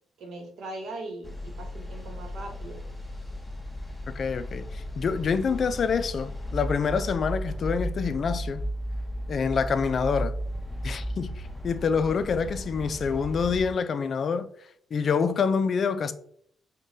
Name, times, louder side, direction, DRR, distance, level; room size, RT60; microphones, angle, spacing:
voice 1, 0.2-2.8, right 2 dB, 70° right, 1.0 m, -40 dB
sound 1, 1.2-13.7, equal, 10° left, 0.6 m, -35 dB
voice 2, 4.1-8.6 9.3-10.3 10.8-14.5 14.9-16.1, left 6 dB, 50° left, 0.3 m, -26 dB
5.0 x 2.2 x 2.6 m
cardioid pair, 90°, 0 cm